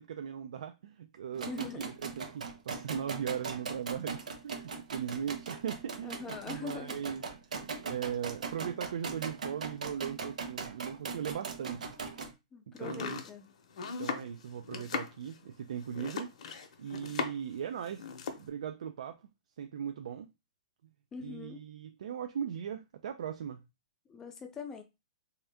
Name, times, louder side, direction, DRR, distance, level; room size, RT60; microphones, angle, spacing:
voice 1, 0.0-11.9 12.7-13.2 14.0-16.3 16.8-18.1 18.3-19.3 19.6-20.3 21.2-23.6, right 8 dB, 65° right, 0.4 m, -39 dB
sound 1, 1.3-12.3, right 5 dB, 85° right, 0.9 m, -40 dB
voice 2, 1.5-1.9 6.0-7.0 12.5-13.5 21.1-21.6 24.1-24.8, left 5 dB, 10° left, 0.4 m, -42 dB
Domestic sounds home sounds, 12.8-17.6 17.8-18.5, left 5 dB, 60° left, 0.8 m, -38 dB
3.5 x 2.8 x 3.4 m
hypercardioid pair, 170°, 4 cm